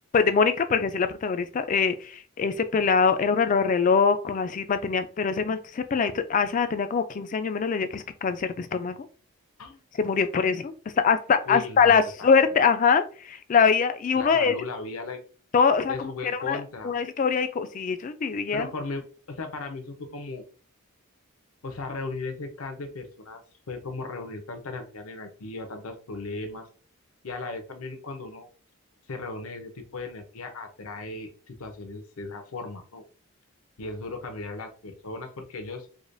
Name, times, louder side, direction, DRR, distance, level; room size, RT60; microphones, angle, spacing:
voice 1, 0.1-9.0 10.0-14.5 15.5-16.1 16.5-18.7, left 5 dB, 35° left, 11 dB, 0.3 m, -23 dB
voice 2, 11.5-12.3 14.1-15.2 15.9-16.9 18.5-20.4 21.6-23.4 23.7-26.7 27.2-28.5 29.1-33.0 33.8-35.9, left 3 dB, 75° left, 6 dB, 0.7 m, -36 dB
4.8 x 2.2 x 2.6 m, 0.39 s
head